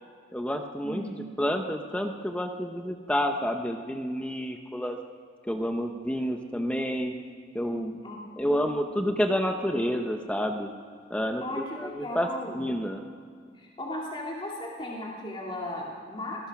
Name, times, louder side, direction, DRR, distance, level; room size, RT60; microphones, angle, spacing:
voice 1, 0.3-1.0 1.4-5.0 5.5-7.1 7.5-8.0 8.4-10.7 11.1-12.3 12.5-13.0, equal, 5° left, 4 dB, 0.8 m, -29 dB
voice 2, 8.0-8.7 11.4-12.6 13.5-16.5, left 1 dB, 30° left, -3 dB, 2.4 m, -36 dB
25.0 x 19.0 x 5.9 m, 2.1 s
head